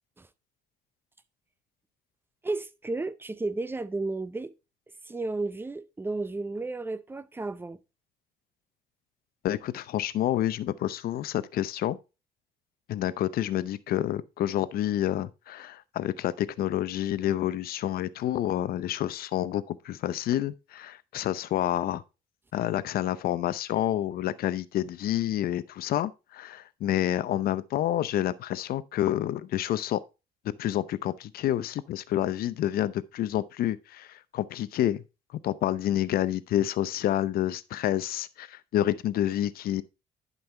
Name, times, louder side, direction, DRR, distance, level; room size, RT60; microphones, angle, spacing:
voice 1, 2.4-4.5 5.1-7.8, right 3 dB, 15° right, 0.6 m, -33 dB
voice 2, 9.4-12.0 12.9-22.0 22.5-30.0 30.6-35.0 35.4-39.8, left 12 dB, 60° left, 0.7 m, -28 dB
11.0 x 5.5 x 3.3 m
cardioid pair, 110°, 17 cm